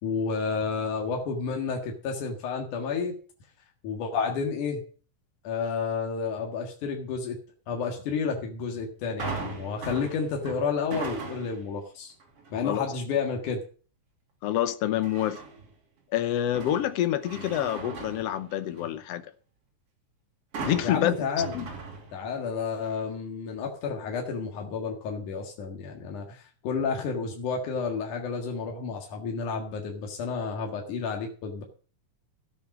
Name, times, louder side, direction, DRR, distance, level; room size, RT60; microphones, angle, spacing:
voice 1, 0.0-3.2 3.8-4.8 5.4-7.4 7.7-12.1 12.5-13.6 20.8-21.5 22.1-31.6, left 5 dB, 85° left, 3.3 m, -31 dB
sound 1, 9.2-11.7 12.2-12.6 15.0-15.7 16.2-19.0 20.5-22.5 22.8-22.9, right 4 dB, 50° right, 3.6 m, -39 dB
voice 2, 14.4-15.4 16.1-19.3 20.6-21.1 21.5-21.7, left 12 dB, 70° left, 1.7 m, -27 dB
13.5 x 8.6 x 6.1 m
omnidirectional pair, 3.5 m